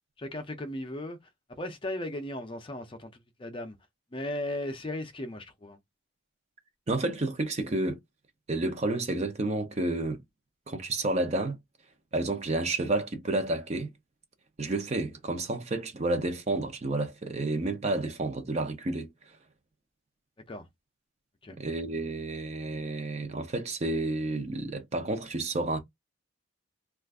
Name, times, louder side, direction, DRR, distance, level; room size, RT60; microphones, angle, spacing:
voice 1, 0.2-1.2 1.6-3.1 3.4-3.7 4.1-5.8 20.5-20.7 21.4-21.6, left 1 dB, 25° left, 0.5 m, -36 dB
voice 2, 6.9-8.0 8.5-10.2 10.7-11.6 12.1-13.9 14.6-19.1 21.6-25.8, right 2 dB, 30° right, 0.5 m, -30 dB
2.4 x 2.4 x 3.4 m
head